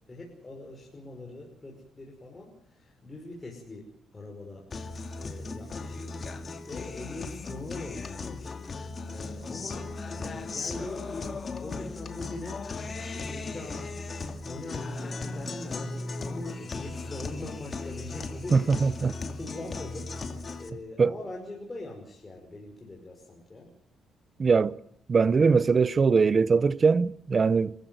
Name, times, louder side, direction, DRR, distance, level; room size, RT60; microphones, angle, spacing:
voice 1, 0.1-8.7 9.0-9.9 10.2-23.7, left 2 dB, 25° left, 5.6 m, -42 dB
Guitar, 4.7-20.7, left 3 dB, 40° left, 2.5 m, -37 dB
voice 2, 18.5-19.1 21.0-21.1 24.4-24.8 25.1-27.7, right 5 dB, 40° right, 0.9 m, -22 dB
28.5 x 15.0 x 7.8 m
cardioid pair, 90°, 0 cm